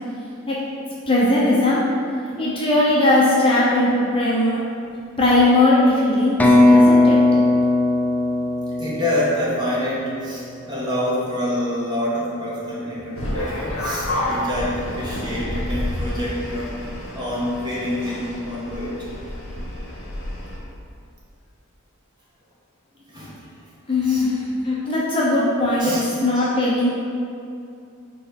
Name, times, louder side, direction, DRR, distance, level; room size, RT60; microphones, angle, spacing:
voice 1, 1.1-1.8 2.4-4.6 5.2-7.2 23.9-24.4 24.6-25.9 26.2-26.9, left 2 dB, 25° left, -6 dB, 0.8 m, -18 dB
sound 1, 6.4-10.2, left 2 dB, 10° left, 0.4 m, -17 dB
voice 2, 8.8-19.1 23.1-24.3 25.8-26.0 26.3-26.5, left 1 dB, 20° right, -7 dB, 1.3 m, -27 dB
sound 2, 13.1-20.6, left 1 dB, 65° left, 1.4 m, -29 dB
4.7 x 4.1 x 5.2 m, 2.5 s
head